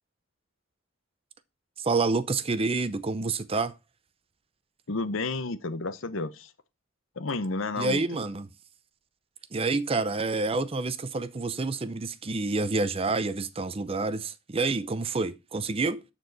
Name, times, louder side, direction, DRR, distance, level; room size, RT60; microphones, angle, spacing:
voice 1, 1.8-3.8 7.8-8.5 9.5-16.0, right 3 dB, 30° right, 0.5 m, -28 dB
voice 2, 4.9-6.5 7.2-8.0, left 3 dB, 70° left, 0.8 m, -31 dB
13.0 x 4.5 x 4.0 m
head